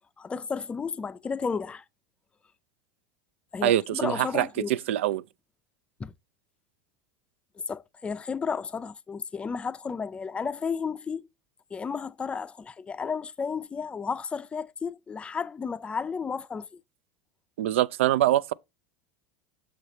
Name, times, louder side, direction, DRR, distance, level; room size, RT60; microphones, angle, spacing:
voice 1, 0.2-1.8 3.5-4.7 6.0-6.1 7.7-11.2 11.7-16.8, left 5 dB, 15° left, 0.4 m, -33 dB
voice 2, 3.6-5.2 17.6-18.5, right 13 dB, 90° right, 0.4 m, -24 dB
6.4 x 4.9 x 4.1 m
supercardioid pair, 125°, 6 cm